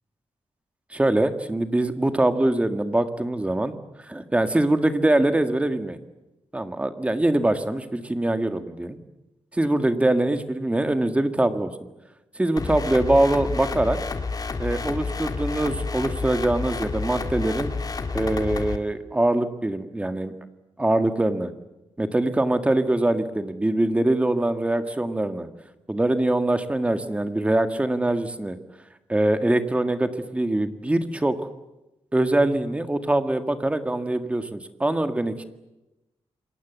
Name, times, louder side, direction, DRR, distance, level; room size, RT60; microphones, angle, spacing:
voice 1, 0.9-3.7 4.0-6.0 6.5-9.0 9.5-11.7 12.4-14.0 14.6-17.7 18.1-20.3 20.8-21.5 22.0-25.5 25.9-28.6 29.1-31.4 32.1-35.4, right 1 dB, 10° right, 8 dB, 1.8 m, -23 dB
sound 1, 12.6-18.8, left 4 dB, 35° left, 2.1 m, -30 dB
28.0 x 23.0 x 8.2 m, 0.98 s
wide cardioid pair, 170°, 11 cm